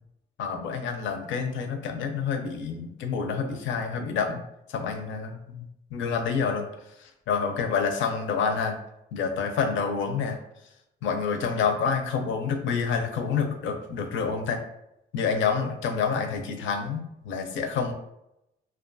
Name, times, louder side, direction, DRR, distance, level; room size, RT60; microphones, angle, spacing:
voice 1, 0.4-4.4 4.7-5.6 5.9-6.7 7.0-8.8 9.1-10.4 11.0-14.6 15.1-17.9, left 5 dB, 75° left, 5 dB, 0.5 m, -28 dB
2.4 x 2.3 x 2.5 m, 0.84 s
cardioid pair, 90°, 20 cm